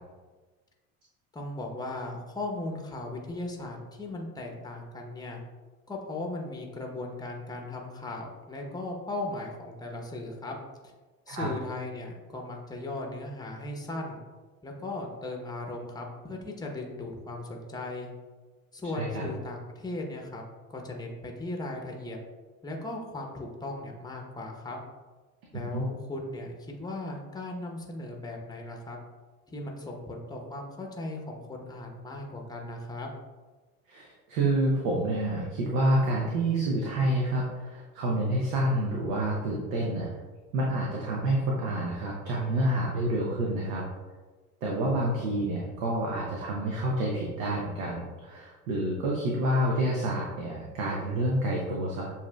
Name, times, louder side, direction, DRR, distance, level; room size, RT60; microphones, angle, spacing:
voice 1, 1.3-5.4 5.9-10.5 11.3-14.2 14.6-18.1 18.7-20.4 20.7-22.2 22.6-24.8 25.5-29.0 29.5-33.1, left 2 dB, 10° left, 1 dB, 0.8 m, -37 dB
voice 2, 18.9-19.3 25.7-25.9 33.9-40.1 40.5-43.8 44.6-52.1, right 1 dB, 70° right, -3 dB, 0.9 m, -28 dB
7.0 x 2.7 x 2.3 m, 1.3 s
hypercardioid pair, 65°, 42 cm